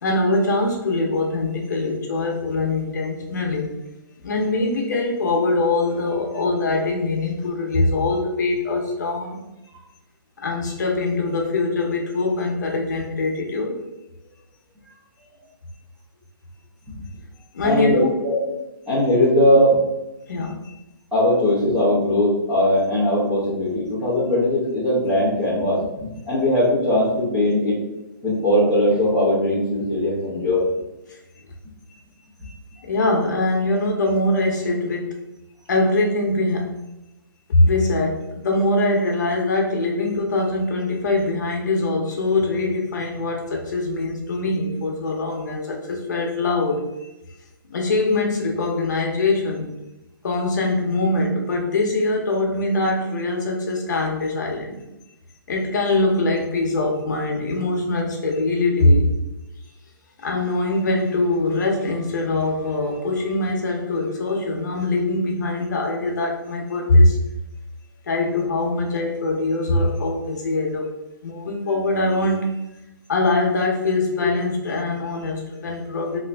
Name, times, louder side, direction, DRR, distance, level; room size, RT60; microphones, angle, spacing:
voice 1, 0.0-3.7 4.2-9.4 10.4-13.8 17.5-18.1 20.3-20.7 31.1-31.2 32.4-35.2 35.7-36.8 37.5-47.1 47.7-49.7 50.2-54.8 55.5-59.1 60.2-67.2 68.1-70.9 71.2-72.6 73.1-76.2, left 2 dB, 50° left, 0 dB, 0.8 m, -22 dB
voice 2, 17.6-18.4 18.9-19.8 21.1-27.8 28.2-30.6, left 1 dB, 5° right, -11 dB, 0.6 m, -19 dB
3.0 x 2.5 x 3.3 m, 0.96 s
hypercardioid pair, 175°, 12 cm